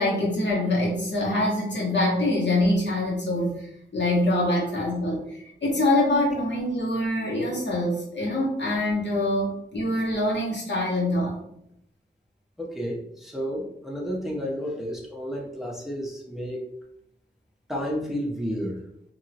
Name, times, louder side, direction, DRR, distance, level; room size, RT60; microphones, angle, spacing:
voice 1, 0.0-5.2 5.6-11.4, left 1 dB, 65° left, -4 dB, 1.1 m, -24 dB
voice 2, 12.6-16.6 17.7-18.8, equal, ahead, -2 dB, 0.6 m, -31 dB
2.9 x 2.8 x 2.7 m, 0.76 s
wide cardioid pair, 70°, 20 cm